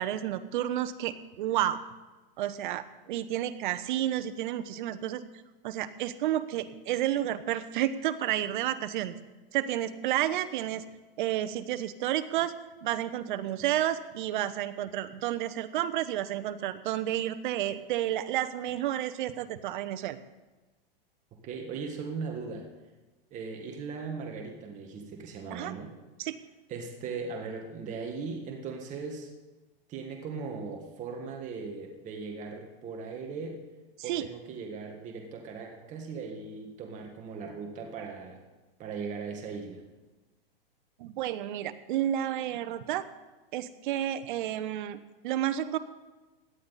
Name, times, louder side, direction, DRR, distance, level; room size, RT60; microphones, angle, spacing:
voice 1, 0.0-1.8 2.4-5.2 5.6-9.1 9.5-10.8 11.2-12.5 12.8-20.2 25.5-25.7 26.2-26.4 34.1-34.2 41.0-43.0 43.5-45.0 45.2-45.8, right 12 dB, 55° right, 12 dB, 1.0 m, -31 dB
voice 2, 21.4-22.7 23.3-25.9 26.7-29.3 29.9-33.6 34.0-38.4 38.8-39.8, right 5 dB, 25° right, 2 dB, 1.6 m, -38 dB
17.5 x 11.0 x 4.1 m, 1.2 s
hypercardioid pair, 140°, 29 cm